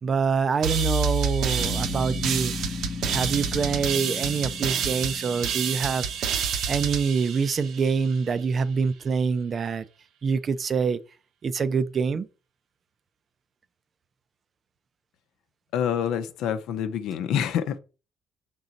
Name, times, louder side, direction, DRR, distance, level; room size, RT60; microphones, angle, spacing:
voice 1, 0.0-2.5 3.0-6.0 6.7-9.9 10.2-11.0 11.4-12.3, right 5 dB, 35° right, 0.5 m, -25 dB
sound 1, 0.6-8.1, right 6 dB, 65° right, 0.8 m, -28 dB
sound 2, 1.6-6.2, left 5 dB, 30° left, 0.3 m, -36 dB
voice 2, 15.7-17.8, left 9 dB, 75° left, 0.7 m, -27 dB
6.1 x 3.8 x 4.0 m
cardioid pair, 125°, 0 cm